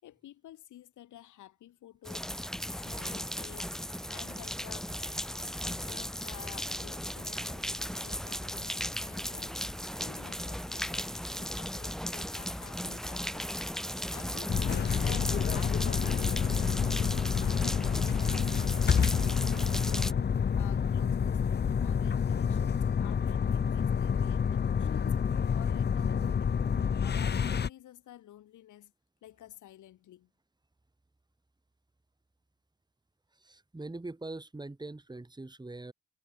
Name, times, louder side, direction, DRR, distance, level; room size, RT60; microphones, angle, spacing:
voice 1, 0.0-2.5 2.8-3.8 4.1-20.1 20.5-21.4 21.8-25.2 25.5-26.6 27.0-28.9 29.2-30.3, left 13 dB, 75° left, 3.5 m, -52 dB
sound 1, 2.0-20.1, equal, ahead, 1.1 m, -36 dB
sound 2, 14.5-27.7, left 7 dB, 35° left, 0.9 m, -28 dB
voice 2, 33.3-35.9, right 2 dB, 15° right, 3.8 m, -42 dB
cardioid pair, 90°, 30 cm